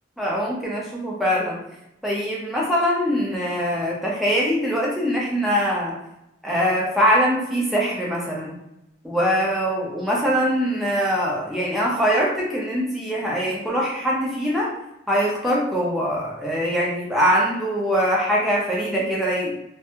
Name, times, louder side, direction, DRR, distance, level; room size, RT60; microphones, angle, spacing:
voice 1, 0.2-1.6 2.0-5.9 6.4-8.5 9.0-14.7 15.1-19.5, equal, ahead, -5 dB, 0.5 m, -22 dB
2.5 x 2.2 x 2.8 m, 0.85 s
head